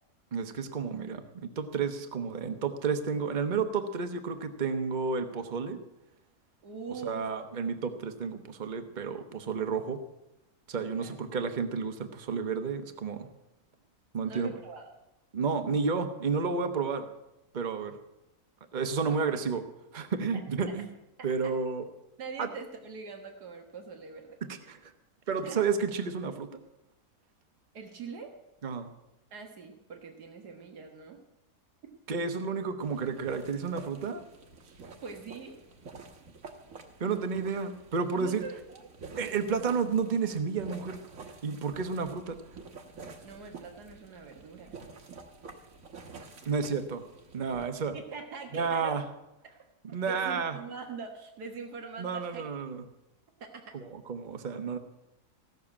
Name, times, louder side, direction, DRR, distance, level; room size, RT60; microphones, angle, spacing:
voice 1, 0.3-5.8 7.0-10.0 10.7-13.3 14.1-14.5 15.3-17.1 17.5-18.0 18.7-19.6 19.9-20.9 21.2-21.8 22.4-22.5 24.4-24.9 25.3-26.6 28.6-28.9 32.1-34.2 37.0-38.4 39.2-41.0 41.4-42.4 46.5-47.0 47.3-48.0 48.5-49.0 49.9-50.6 52.0-52.8 53.7-54.8, right 5 dB, 35° right, 7 dB, 1.1 m, -31 dB
voice 2, 6.6-7.2 10.9-11.2 14.3-14.9 19.1-19.2 20.3-20.4 20.7-20.8 21.4-21.5 22.2-24.8 25.4-25.6 27.7-28.3 29.3-31.2 34.6-35.6 38.2-38.6 43.2-44.7 47.9-49.0 50.0-52.4 53.4-53.7, right 5 dB, 90° right, 3 dB, 2.0 m, -43 dB
sound 1, 32.8-47.7, right 4 dB, 60° right, 1.7 m, -49 dB
16.5 x 6.6 x 8.7 m, 0.93 s
omnidirectional pair, 1.6 m